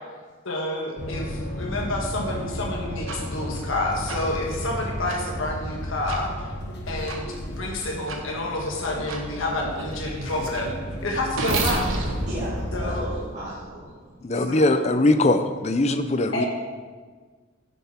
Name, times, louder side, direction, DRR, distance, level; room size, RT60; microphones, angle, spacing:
voice 1, 0.4-6.3 6.9-10.7 11.0-12.0 12.7-13.0 14.3-14.9 16.3-16.5, left 2 dB, 75° left, -1 dB, 1.4 m, -29 dB
sound 1, 1.0-13.0, equal, 55° left, 1.2 m, -34 dB
sound 2, 3.1-3.2 4.1-4.2 5.1-5.2 6.1-6.2 7.1-7.2 8.1-8.2 9.1-9.2 9.8-13.7, right 2 dB, 75° right, 1.3 m, -30 dB
voice 2, 12.3-14.2, equal, 35° right, -11 dB, 2.3 m, -35 dB
voice 3, 14.2-16.5, left 2 dB, 35° left, 10 dB, 0.5 m, -21 dB
10.5 x 6.9 x 4.4 m, 1.5 s
head